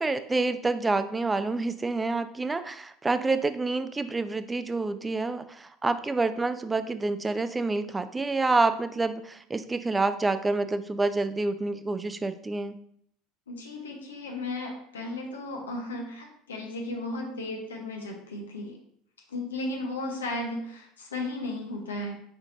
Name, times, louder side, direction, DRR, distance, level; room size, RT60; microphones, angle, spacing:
voice 1, 0.0-12.7, right 3 dB, 15° right, 11 dB, 0.4 m, -28 dB
voice 2, 13.5-18.8 19.3-22.1, left 2 dB, 90° left, 1 dB, 0.8 m, -35 dB
4.5 x 4.4 x 2.6 m, 0.66 s
hypercardioid pair, 75°, 0 cm